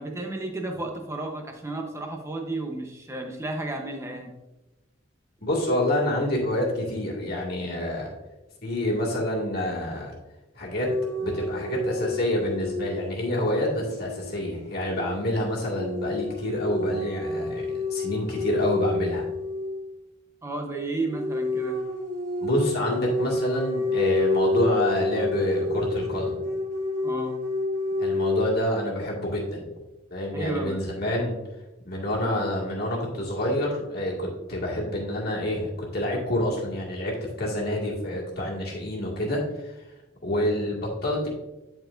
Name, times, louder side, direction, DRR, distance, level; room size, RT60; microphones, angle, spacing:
voice 1, 0.0-4.3 20.4-21.8 27.0-27.4 30.3-30.8, right 2 dB, 15° right, 2 dB, 0.8 m, -32 dB
voice 2, 5.4-8.1 8.6-10.1 10.6-10.9 11.2-17.7 17.9-19.2 22.4-26.5 28.0-29.6 30.1-31.4 31.8-39.8 40.2-41.3, left 1 dB, 50° left, -4 dB, 1.9 m, -27 dB
sound 1, 10.8-19.9 21.1-28.4, left 2 dB, 40° right, 1.4 m, -29 dB
10.5 x 4.4 x 2.5 m, 1.0 s
head